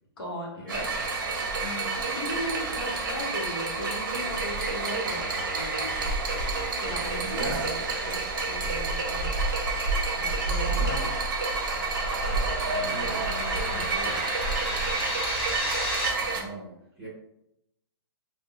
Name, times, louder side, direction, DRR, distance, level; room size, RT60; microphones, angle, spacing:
voice 1, 0.2-0.8 1.6-6.1 6.8-8.2 8.5-9.3 10.2-11.1 12.7-14.2, left 1 dB, 60° left, -2 dB, 1.1 m, -38 dB
sound 1, 0.7-16.4, right 3 dB, 50° right, 0.6 m, -29 dB
voice 2, 7.2-7.7 10.6-11.2 12.6-13.6 16.2-17.1, right 2 dB, 5° right, -11 dB, 0.7 m, -37 dB
sound 2, 8.5-16.1, left 1 dB, 20° left, 0.9 m, -36 dB
2.2 x 2.1 x 3.6 m, 0.81 s
hypercardioid pair, 170°, 14 cm